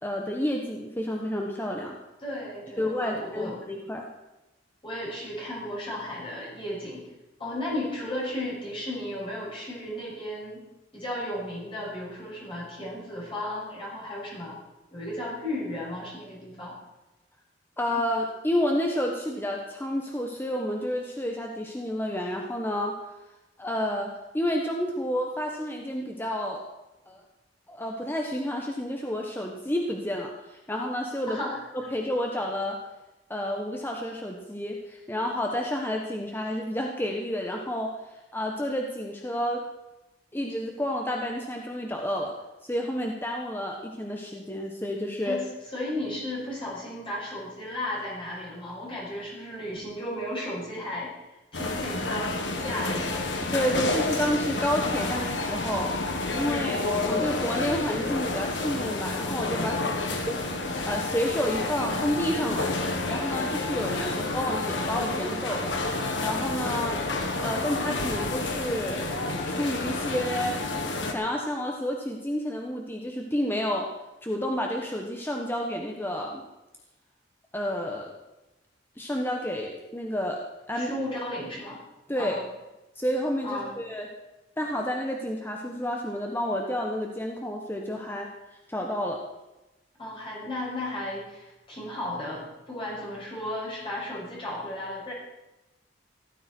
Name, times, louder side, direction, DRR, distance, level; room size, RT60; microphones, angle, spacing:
voice 1, 0.0-2.0 2.8-4.1 17.8-22.9 23.6-26.6 27.1-27.2 27.7-31.4 31.9-32.8 33.3-37.9 38.3-39.6 40.3-42.3 42.6-45.4 53.5-56.0 56.3-59.9 60.3-60.4 60.9-62.7 63.1-65.7 66.2-67.0 67.4-69.1 69.4-70.6 71.0-73.9 74.2-76.4 77.5-78.1 79.0-80.4 80.7-80.9 82.1-82.4 83.0-84.1 84.6-88.3 88.7-89.2, equal, 10° left, 1 dB, 1.3 m, -30 dB
voice 2, 2.2-3.5 4.8-7.1 7.4-10.7 10.9-14.5 14.9-16.7 31.3-31.6 45.2-53.3 59.7-60.1 80.7-81.8 82.2-82.4 83.4-83.8 90.0-95.1, left 1 dB, 30° left, -6 dB, 6.8 m, -34 dB
sound 1, 51.5-71.1, left 2 dB, 85° left, 2.0 m, -29 dB
17.0 x 13.5 x 4.6 m, 1.0 s
head